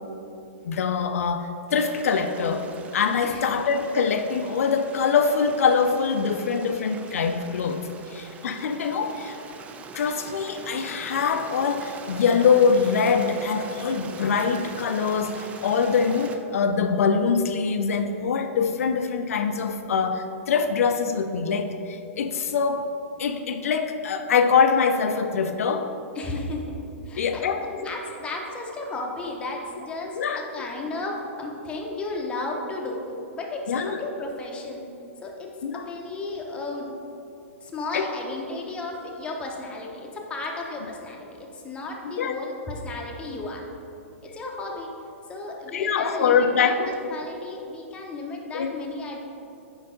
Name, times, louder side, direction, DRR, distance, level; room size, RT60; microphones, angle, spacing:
voice 1, 0.7-9.4 9.9-22.9 23.2-25.9 27.2-27.9 30.2-30.4 33.7-34.0 35.6-35.8 37.9-38.1 42.0-42.3 45.7-46.9 48.5-48.7, left 5 dB, 75° left, 7 dB, 0.4 m, -24 dB
Stream, 1.7-16.4, right 4 dB, 15° right, 0.3 m, -42 dB
voice 2, 26.1-26.8 27.0-33.0 33.4-34.8 35.2-36.9 37.6-43.7 44.2-44.9 45.3-49.2, left 2 dB, 15° left, -1 dB, 0.7 m, -34 dB
4.7 x 4.5 x 5.0 m, 2.7 s
hypercardioid pair, 135°, 8 cm